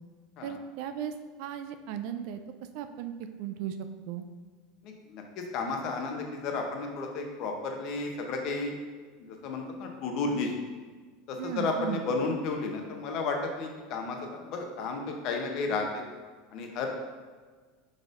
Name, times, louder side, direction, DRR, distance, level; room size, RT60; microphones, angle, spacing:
voice 1, 0.4-1.1 1.4-2.4 2.7-3.1 3.4-3.8 4.1-4.2 11.4-12.0, right 9 dB, 65° right, 9 dB, 0.3 m, -36 dB
voice 2, 4.8-8.8 9.2-10.5 11.3-16.0 16.5-16.9, left 3 dB, 50° left, 3 dB, 0.7 m, -33 dB
4.9 x 4.2 x 2.5 m, 1.5 s
supercardioid pair, 140°, 0 cm